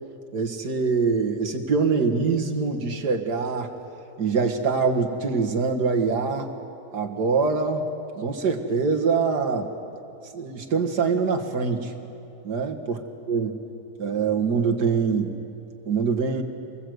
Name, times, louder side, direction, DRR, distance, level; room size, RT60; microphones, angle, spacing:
voice 1, 0.3-3.7 4.2-6.5 6.9-7.8 8.2-9.7 10.3-11.9 12.4-13.0 13.3-13.6 14.0-15.4 15.9-16.4, right 5 dB, 75° right, 3 dB, 2.2 m, -24 dB
26.5 x 21.0 x 7.9 m, 2.8 s
omnidirectional pair, 1.8 m